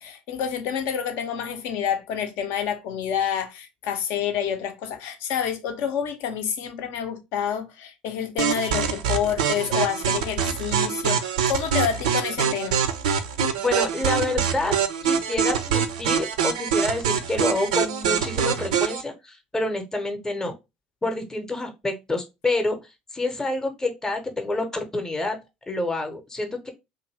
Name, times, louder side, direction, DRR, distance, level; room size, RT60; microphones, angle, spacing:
voice 1, 0.0-12.8, left 8 dB, 60° left, 0.6 m, -28 dB
sound 1, 8.4-19.0, right 7 dB, 70° right, 0.4 m, -24 dB
voice 2, 13.6-14.7 15.0-20.5 21.0-22.8 23.1-25.4 25.7-26.7, left 2 dB, 15° left, 0.7 m, -27 dB
2.7 x 2.5 x 2.9 m
figure-of-eight pair, 60°, 4 cm